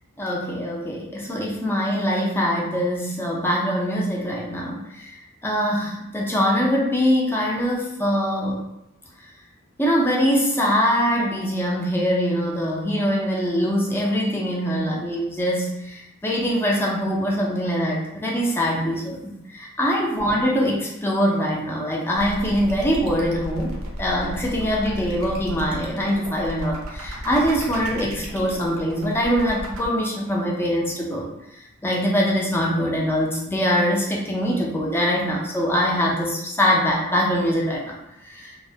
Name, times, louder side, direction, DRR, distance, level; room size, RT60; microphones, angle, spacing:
voice 1, 0.2-5.1 5.4-8.6 9.8-31.3 31.8-38.6, equal, 10° left, -3 dB, 0.4 m, -23 dB
sound 1, 22.1-29.9, equal, 75° right, 0.5 m, -34 dB
2.3 x 2.1 x 2.7 m, 0.82 s
head